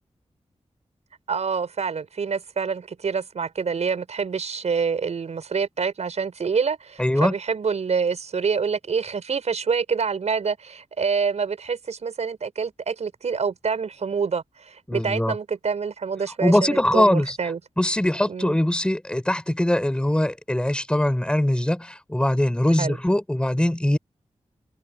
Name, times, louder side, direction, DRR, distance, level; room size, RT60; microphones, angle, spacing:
voice 1, 1.3-17.6 18.3-18.6 22.8-23.0, right 5 dB, 75° right, 5.6 m, -26 dB
voice 2, 7.0-7.3 14.9-15.3 16.4-17.4 17.8-24.0, left 1 dB, 10° left, 4.6 m, -22 dB
wide cardioid pair, 135°, 11 cm